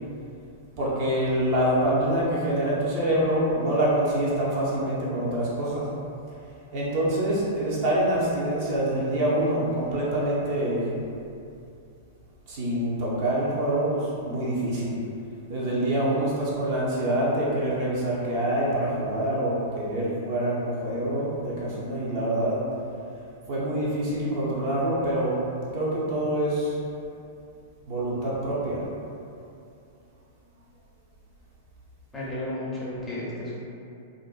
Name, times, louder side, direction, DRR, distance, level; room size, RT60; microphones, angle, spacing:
voice 1, 0.8-5.9 6.7-10.8 12.5-15.0 15.5-22.6 23.5-25.4 25.7-26.8 27.9-28.8, right 1 dB, 50° right, -7 dB, 0.6 m, -26 dB
voice 2, 32.1-33.6, left 1 dB, 15° left, -7 dB, 0.6 m, -33 dB
2.5 x 2.1 x 2.4 m, 2.6 s
figure-of-eight pair, 100°, 0 cm